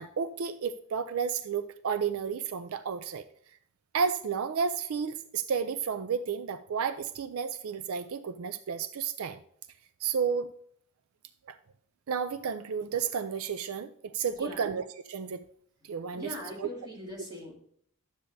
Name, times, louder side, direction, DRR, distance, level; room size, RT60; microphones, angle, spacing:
voice 1, 0.0-3.2 3.9-9.4 10.0-10.5 11.5-11.6 12.1-15.4 15.8-16.7, right 6 dB, 75° right, 12 dB, 0.4 m, -32 dB
voice 2, 14.2-14.6 16.1-17.5, left 1 dB, 20° right, -4 dB, 2.9 m, -41 dB
12.0 x 8.0 x 2.7 m, 0.65 s
head